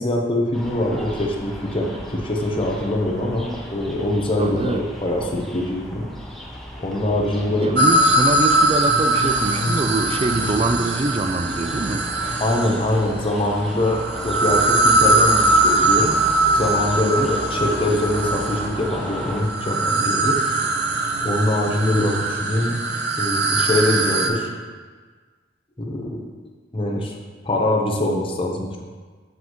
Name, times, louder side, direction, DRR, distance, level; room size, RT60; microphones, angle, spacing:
voice 1, 0.0-6.0 6.8-7.8 12.4-16.1 16.5-20.4 21.2-22.8 23.2-24.5 25.8-26.2 26.7-27.1 27.4-28.8, left 1 dB, 30° left, -1 dB, 0.9 m, -23 dB
sound 1, 0.5-19.4, equal, ahead, 0.8 m, -36 dB
voice 2, 4.4-4.8 7.5-12.1 17.0-17.3, right 2 dB, 30° right, 8 dB, 0.4 m, -24 dB
sound 2, 6.8-21.3, left 1 dB, 75° left, 1.6 m, -36 dB
sound 3, 7.8-13.0 13.8-24.3, right 2 dB, 60° right, 0.7 m, -21 dB
7.9 x 7.7 x 3.1 m, 1.5 s
head